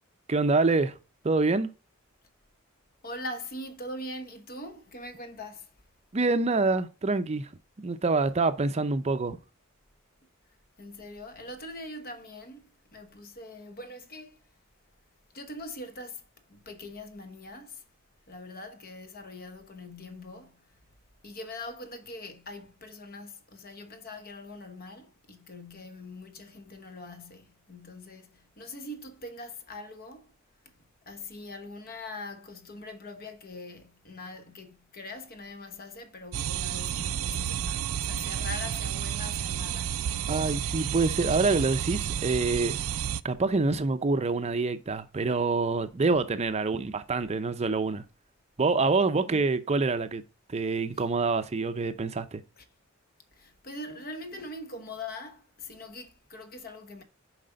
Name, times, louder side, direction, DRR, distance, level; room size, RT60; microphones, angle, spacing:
voice 1, 0.3-0.9 1.2-1.7 6.1-7.5 7.8-9.4 40.3-42.7 43.2-48.0 48.6-50.2 50.5-52.4, right 3 dB, 30° right, 0.5 m, -26 dB
voice 2, 3.0-5.7 10.8-14.5 15.3-17.8 18.3-20.8 21.2-30.3 30.6-30.7 31.0-40.2 49.2-49.4 52.6-52.7 53.3-57.0, left 2 dB, 45° left, 1.1 m, -42 dB
sound 1, 36.3-43.2, right 9 dB, 85° right, 0.4 m, -31 dB
7.6 x 4.8 x 3.8 m
head